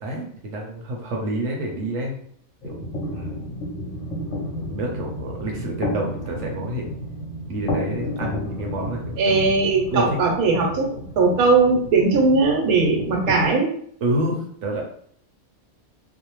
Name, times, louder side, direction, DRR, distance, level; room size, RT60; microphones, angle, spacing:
voice 1, 0.0-2.3 2.6-2.7 3.1-3.5 4.6-6.9 7.5-9.5 9.9-10.0 14.0-14.8, right 1 dB, 65° right, 0 dB, 0.8 m, -28 dB
sound 1, 2.6-13.5, equal, 60° left, 1.0 m, -32 dB
voice 2, 9.2-13.7, right 3 dB, 90° right, 1 dB, 1.1 m, -19 dB
2.6 x 2.0 x 2.9 m, 0.63 s
omnidirectional pair, 1.5 m